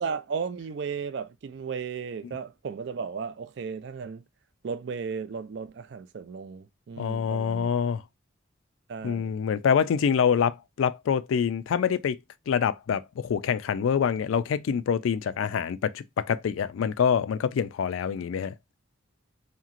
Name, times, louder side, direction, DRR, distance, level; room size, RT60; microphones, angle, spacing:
voice 1, 0.0-4.2 4.6-7.7 8.9-9.3, right 6 dB, 60° right, 0.3 m, -35 dB
voice 2, 7.0-8.0 9.0-12.2 12.5-18.5, left 7 dB, 80° left, 0.3 m, -26 dB
2.9 x 2.8 x 2.4 m
head